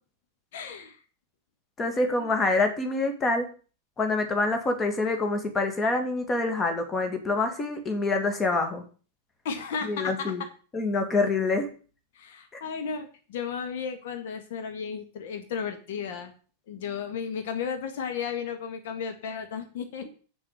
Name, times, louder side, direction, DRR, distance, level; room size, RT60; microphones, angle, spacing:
voice 1, 0.5-1.0 2.2-2.3 9.4-10.3 12.2-16.3 16.7-20.1, left 6 dB, 55° left, 6 dB, 1.7 m, -34 dB
voice 2, 1.8-3.5 4.0-8.8 9.8-10.4 10.7-11.7 12.5-12.6, left 3 dB, 20° left, 5 dB, 2.3 m, -26 dB
8.0 x 7.3 x 6.8 m, 0.39 s
figure-of-eight pair, 90°, 0 cm